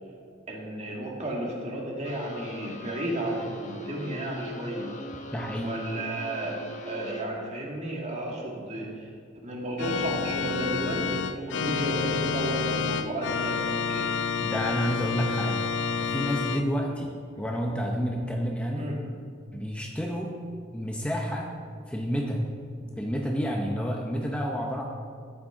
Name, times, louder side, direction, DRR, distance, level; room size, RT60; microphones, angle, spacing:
voice 1, 0.5-4.9 5.6-6.6 6.9-9.1 9.4-14.1 18.8-19.0, right 1 dB, 35° right, -2 dB, 2.0 m, -33 dB
sound 1, 2.0-7.2, left 1 dB, 40° left, 1.1 m, -41 dB
voice 2, 5.3-5.7 14.4-18.9 19.5-20.3 20.7-21.5 21.9-22.4 22.8-24.8, equal, 5° left, 0 dB, 0.7 m, -30 dB
Organ, 9.8-16.6, left 6 dB, 70° left, 0.5 m, -29 dB
13.0 x 8.9 x 3.8 m, 2.2 s
head